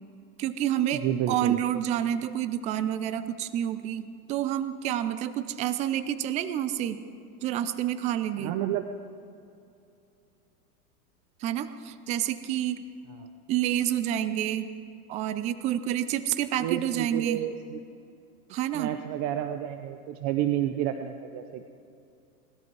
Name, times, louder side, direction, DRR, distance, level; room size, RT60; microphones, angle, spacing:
voice 1, 0.4-7.0 7.4-8.6 11.4-12.8 13.5-14.7 15.1-17.4 18.5-18.9, right 11 dB, 20° right, 12 dB, 0.3 m, -29 dB
voice 2, 1.0-1.6 8.4-8.8 16.6-17.8 18.7-21.7, right 11 dB, 40° right, 8 dB, 0.8 m, -30 dB
19.5 x 13.0 x 4.7 m, 2.5 s
hypercardioid pair, 115°, 46 cm